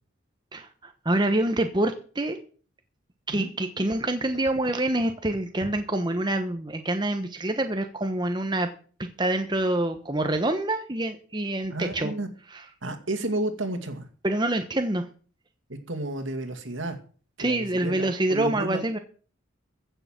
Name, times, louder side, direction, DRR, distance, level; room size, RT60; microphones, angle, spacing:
voice 1, 0.5-2.4 3.3-8.7 9.0-12.1 14.2-15.1 17.4-19.0, right 1 dB, 20° right, 6 dB, 1.0 m, -26 dB
voice 2, 11.7-12.3 12.8-14.1 15.9-17.0 17.4-18.8, right 2 dB, 70° right, 7 dB, 2.3 m, -31 dB
15.0 x 6.9 x 7.5 m, 0.40 s
head